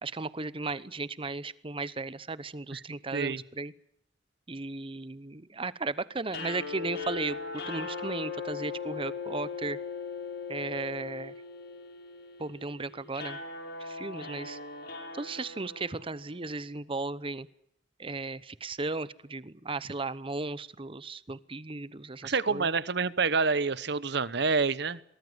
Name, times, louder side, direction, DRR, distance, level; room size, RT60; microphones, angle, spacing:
voice 1, 0.0-3.7 4.5-9.8 10.5-11.3 12.4-13.4 13.8-14.6 15.1-17.5 18.0-22.7, right 3 dB, 30° right, 17 dB, 0.9 m, -36 dB
sound 1, 6.3-16.5, left 5 dB, 60° left, 5.9 m, -39 dB
voice 2, 22.2-25.0, right 4 dB, 65° right, 17 dB, 1.0 m, -27 dB
23.0 x 19.5 x 8.1 m, 0.72 s
head